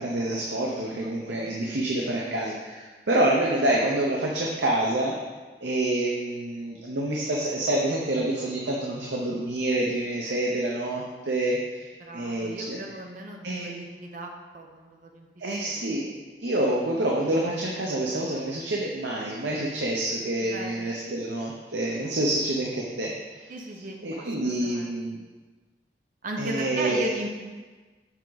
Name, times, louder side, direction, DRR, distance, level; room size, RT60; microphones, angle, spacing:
voice 1, 0.0-5.2 5.6-11.9 12.1-12.8 13.4-13.7 15.4-16.1 16.4-23.1 23.4-23.5 24.0-25.2 26.4-27.1, right 1 dB, 80° right, -2 dB, 0.8 m, -27 dB
voice 2, 12.0-15.3 15.6-15.9 20.4-20.7 23.5-24.9 26.2-27.3, right 1 dB, 50° right, 2 dB, 0.8 m, -36 dB
7.2 x 4.8 x 4.0 m, 1.3 s
head